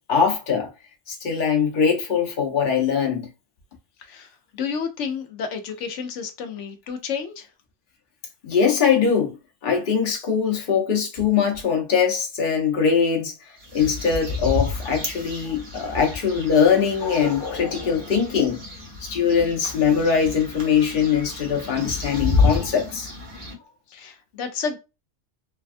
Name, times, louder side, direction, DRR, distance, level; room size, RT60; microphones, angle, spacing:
voice 1, 0.1-0.7 1.1-3.3 8.4-9.3 9.6-13.3 13.7-18.6 19.0-23.1, left 6 dB, 45° left, 0.9 m, -21 dB
voice 2, 4.0-7.5 23.9-24.8, left 6 dB, 75° left, 1.0 m, -31 dB
sound 1, 13.6-23.5, left 3 dB, 55° right, 1.2 m, -29 dB
3.4 x 2.2 x 2.5 m
omnidirectional pair, 1.3 m